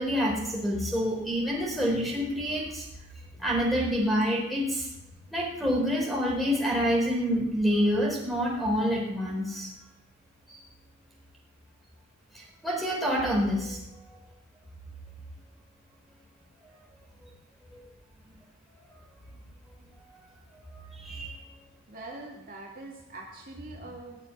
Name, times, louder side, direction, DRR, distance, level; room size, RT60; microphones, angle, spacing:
voice 1, 0.0-2.9 3.4-4.9 5.3-9.7 10.5-10.6 12.3-14.2 16.6-16.8 17.2-17.3 17.7-17.8 18.9-19.0 20.1-20.2 20.5-21.4, equal, ahead, -2 dB, 4.4 m, -28 dB
voice 2, 21.9-24.2, right 2 dB, 40° right, -2 dB, 2.6 m, -43 dB
19.0 x 6.8 x 9.9 m, 0.87 s
head